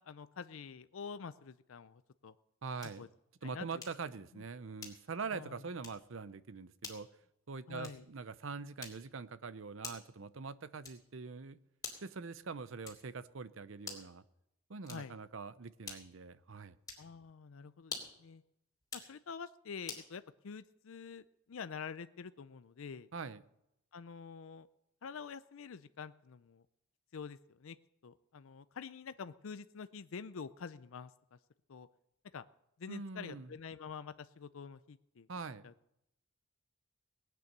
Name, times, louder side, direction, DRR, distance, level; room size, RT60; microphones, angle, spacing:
voice 1, 0.0-2.3 3.0-3.1 3.4-3.7 5.3-5.6 7.7-8.0 14.9-15.1 17.0-18.4 18.9-23.1 23.9-24.7 25.0-26.7 27.1-27.8 28.0-31.4 31.7-31.9 32.3-32.5 32.8-35.3 35.6-35.7, left 6 dB, 75° left, 13 dB, 0.5 m, -47 dB
voice 2, 2.6-3.1 3.4-7.1 7.5-11.6 12.0-14.2 14.7-16.8 23.1-23.4 32.9-33.5 35.3-35.7, right 4 dB, 70° right, 15 dB, 0.7 m, -43 dB
sound 1, 2.8-3.1 3.8-4.1 4.8-5.2 5.8-6.1 6.8-7.1 7.8-8.1 8.8-9.2 9.8-10.2 10.8-11.2 11.8-12.2 12.8-13.2 13.8-14.2 14.8-15.2 15.8-16.2 16.8-17.1 17.8-18.3 18.8-19.1 19.9-20.1, left 4 dB, 15° left, 2.8 m, -47 dB
18.5 x 9.3 x 6.7 m, 0.83 s
head